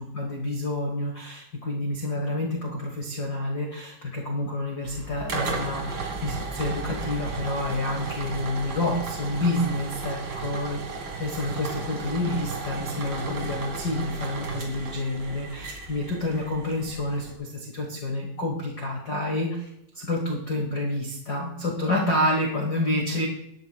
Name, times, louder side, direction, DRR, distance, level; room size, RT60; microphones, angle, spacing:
voice 1, 0.0-10.8 11.2-19.7 19.9-23.3, left 1 dB, 50° left, 0 dB, 1.1 m, -28 dB
sound 1, 4.8-17.3, right 4 dB, 45° right, 2.0 m, -35 dB
18.0 x 12.0 x 2.3 m, 0.82 s
omnidirectional pair, 3.9 m